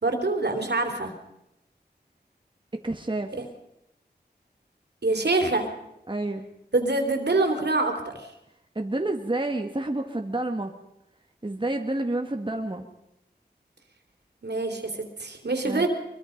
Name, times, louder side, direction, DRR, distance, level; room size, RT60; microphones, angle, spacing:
voice 1, 0.0-1.1 3.4-3.5 5.0-5.7 6.7-8.3 14.4-15.9, right 2 dB, 70° right, 4 dB, 3.4 m, -25 dB
voice 2, 2.7-3.3 6.1-6.4 8.7-10.7 11.4-12.9 15.6-15.9, right 2 dB, 25° right, 4 dB, 1.6 m, -29 dB
23.5 x 22.5 x 5.2 m, 0.85 s
wide cardioid pair, 55°, 18 cm